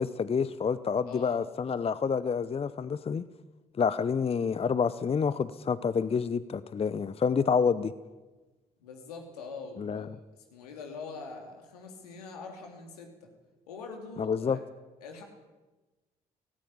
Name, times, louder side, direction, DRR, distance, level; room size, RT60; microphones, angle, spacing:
voice 1, 0.0-3.2 3.8-7.9 9.8-10.1 14.2-14.6, left 6 dB, 30° left, 15 dB, 0.8 m, -28 dB
voice 2, 1.0-1.4 8.8-10.1 10.3-13.3 13.7-14.6 15.0-15.2, left 4 dB, 75° left, 3 dB, 3.1 m, -43 dB
18.0 x 17.5 x 8.9 m, 1.2 s
figure-of-eight pair, 45°, 20 cm